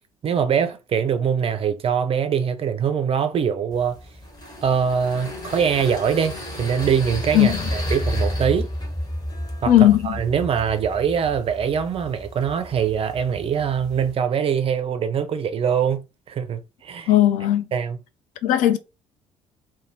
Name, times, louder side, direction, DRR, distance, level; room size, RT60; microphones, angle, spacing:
voice 1, 0.2-4.0 4.6-8.7 9.6-17.1 17.7-18.0, right 7 dB, 35° right, 0.5 m, -23 dB
sound 1, 3.7-14.1, equal, 25° left, 1.3 m, -32 dB
voice 2, 9.7-10.2 17.1-17.7 18.4-18.8, left 12 dB, 50° left, 0.4 m, -17 dB
2.5 x 2.2 x 2.9 m
figure-of-eight pair, 50°, 17 cm